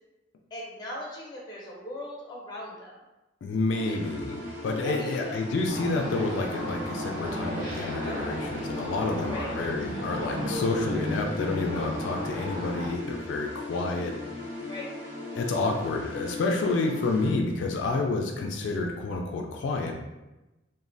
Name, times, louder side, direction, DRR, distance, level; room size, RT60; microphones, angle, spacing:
voice 1, 0.5-2.9 3.8-4.0 4.8-5.4 9.3-9.5 14.7-14.9, left 1 dB, 20° left, -4 dB, 0.7 m, -39 dB
voice 2, 3.4-14.2 15.3-19.9, left 3 dB, 80° left, 2 dB, 0.3 m, -29 dB
sound 1, 3.7-17.3, left 1 dB, 85° right, 0.9 m, -38 dB
sound 2, 5.7-12.9, equal, 65° right, 1.1 m, -34 dB
3.1 x 2.1 x 2.5 m, 1.0 s
head